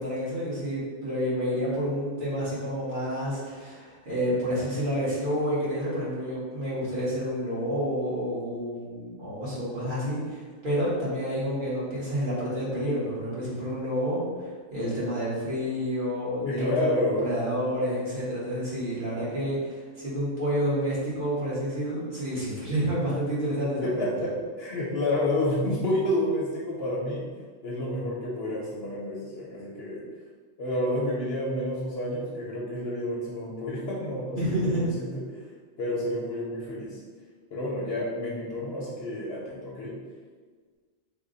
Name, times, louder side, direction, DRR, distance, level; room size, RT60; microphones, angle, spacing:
voice 1, 0.0-16.7 17.2-24.1 34.3-34.8, equal, 40° right, -9 dB, 1.4 m, -29 dB
voice 2, 16.4-17.5 23.8-27.3 27.6-30.1 30.6-35.2 35.8-37.0 37.5-40.0, left 1 dB, 60° left, -4 dB, 0.7 m, -29 dB
3.4 x 2.2 x 3.8 m, 1.5 s
omnidirectional pair, 1.4 m